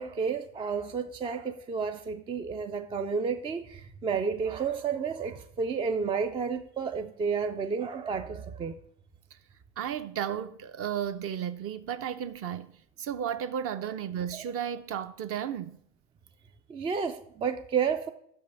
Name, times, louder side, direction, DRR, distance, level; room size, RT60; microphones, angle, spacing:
voice 1, 0.0-8.8 14.3-14.4 16.7-18.1, right 6 dB, 15° right, 0.3 m, -31 dB
voice 2, 9.8-15.8, right 9 dB, 40° right, 0.7 m, -34 dB
6.2 x 5.5 x 6.6 m
hypercardioid pair, 90°, 36 cm